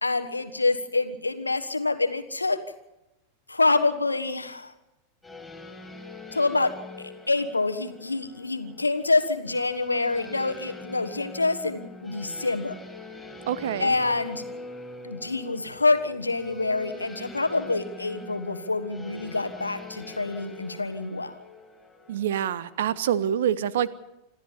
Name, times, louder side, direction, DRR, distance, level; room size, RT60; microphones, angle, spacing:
voice 1, 0.0-2.6 3.5-4.7 6.3-12.8 13.8-14.4 15.0-21.4, left 3 dB, 80° left, 9 dB, 1.4 m, -26 dB
sound 1, 5.2-23.3, left 2 dB, 5° left, 5.1 m, -43 dB
voice 2, 13.5-13.9 22.1-23.9, right 9 dB, 60° right, 18 dB, 0.9 m, -26 dB
26.5 x 14.0 x 7.2 m, 0.95 s
figure-of-eight pair, 90°, 0 cm